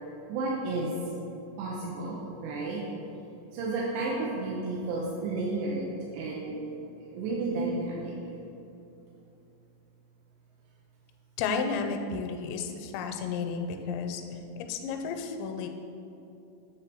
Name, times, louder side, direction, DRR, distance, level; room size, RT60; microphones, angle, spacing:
voice 1, 0.3-0.9 1.6-2.8 3.5-6.6 7.1-8.1, right 3 dB, 90° right, -4 dB, 3.0 m, -32 dB
voice 2, 11.4-14.2 14.7-15.7, left 5 dB, 85° left, 5 dB, 2.8 m, -32 dB
8.7 x 3.5 x 6.3 m, 2.8 s
omnidirectional pair, 5.0 m